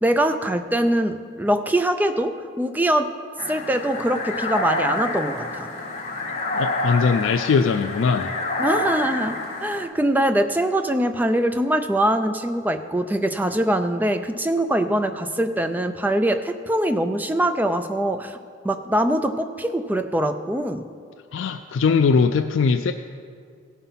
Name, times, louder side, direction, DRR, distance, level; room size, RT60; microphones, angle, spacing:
voice 1, 0.0-3.1 3.5-5.7 8.6-9.3 9.6-18.4 18.6-20.8, right 1 dB, 10° right, 8 dB, 0.3 m, -23 dB
sound 1, 3.4-9.8, left 2 dB, 30° left, 1.5 m, -28 dB
voice 2, 6.5-8.3 21.3-22.9, left 5 dB, 70° left, 6 dB, 0.3 m, -20 dB
16.5 x 5.6 x 5.7 m, 2.3 s
head